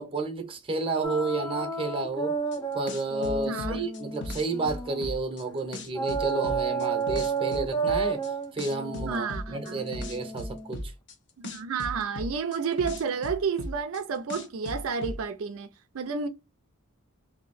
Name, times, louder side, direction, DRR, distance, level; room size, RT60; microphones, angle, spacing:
voice 1, 0.0-2.4 2.7-8.2 8.5-10.9, right 3 dB, 25° right, 0.7 m, -31 dB
sound 1, 1.0-5.2 5.9-10.7, right 4 dB, 15° left, 0.4 m, -32 dB
sound 2, 2.5-2.6 2.9-5.4 5.7-8.3 8.6-11.1 11.4-14.0 14.3-15.2, left 1 dB, 50° left, 0.7 m, -36 dB
voice 2, 3.5-3.8 8.9-9.8 11.4-15.7 15.9-16.3, right 5 dB, 65° right, 0.4 m, -31 dB
2.9 x 2.7 x 4.0 m
head